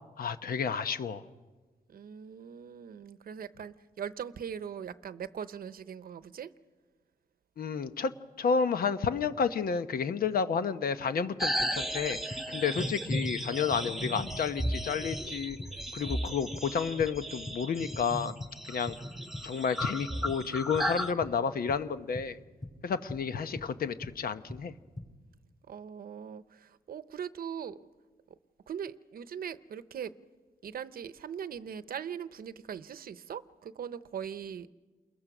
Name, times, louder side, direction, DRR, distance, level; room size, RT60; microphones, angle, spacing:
voice 1, 0.2-1.2 7.6-8.1 8.4-15.6 15.9-18.3 18.7-19.0 19.4-22.4 22.8-24.7, left 6 dB, 75° left, 10 dB, 0.9 m, -31 dB
voice 2, 1.9-6.5 25.7-27.9 28.7-30.1 30.6-34.7, right 8 dB, 75° right, 13 dB, 0.8 m, -40 dB
sound 1, 11.4-21.1, equal, ahead, 1.3 m, -35 dB
sound 2, 12.3-18.6 18.9-25.2, left 1 dB, 25° left, 5.6 m, -43 dB
28.5 x 22.0 x 6.1 m, 1.3 s
wide cardioid pair, 115°, 15 cm